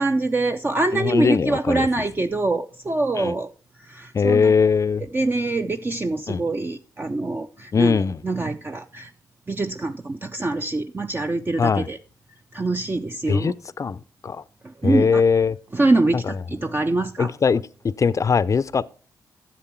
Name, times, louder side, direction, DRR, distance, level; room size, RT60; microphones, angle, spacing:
voice 1, 0.0-3.5 3.8-4.5 5.1-8.0 8.2-9.1 9.5-12.0 12.5-13.5 14.6-15.2 15.7-17.3, right 2 dB, 25° right, 0.6 m, -24 dB
voice 2, 0.9-1.9 3.2-3.3 4.1-5.1 6.3-6.4 7.7-8.2 11.6-11.9 13.3-14.4 14.8-15.6 16.3-16.4 17.2-17.6 18.0-18.8, left 5 dB, 40° left, 0.5 m, -20 dB
10.5 x 7.4 x 4.4 m
hypercardioid pair, 45°, 8 cm